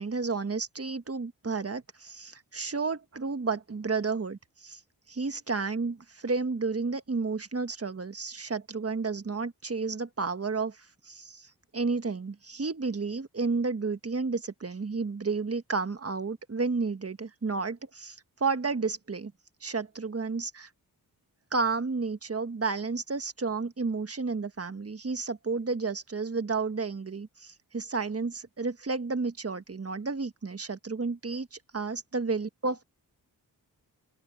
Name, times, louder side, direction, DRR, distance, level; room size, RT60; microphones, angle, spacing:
voice 1, 0.0-4.8 5.1-19.3 19.6-20.7 21.5-32.8, right 4 dB, 35° right, 1.4 m, -32 dB
open air
cardioid pair, 55°, 39 cm